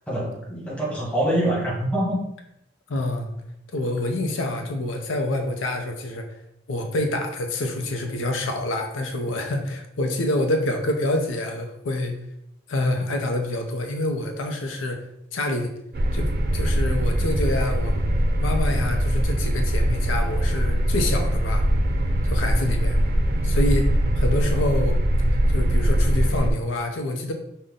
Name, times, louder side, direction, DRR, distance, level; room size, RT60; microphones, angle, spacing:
voice 1, 0.1-2.3, right 1 dB, 5° left, -5 dB, 1.2 m, -25 dB
voice 2, 2.9-3.3 3.7-6.4 6.7-12.2 12.7-15.1 15.3-15.7 16.1-18.0 18.4-21.7 22.2-23.0 23.4-25.0 25.5-27.3, left 1 dB, 90° left, 4 dB, 0.6 m, -27 dB
sound 1, 15.9-26.5, equal, 50° right, 0.5 m, -22 dB
5.4 x 2.1 x 3.7 m, 0.78 s
head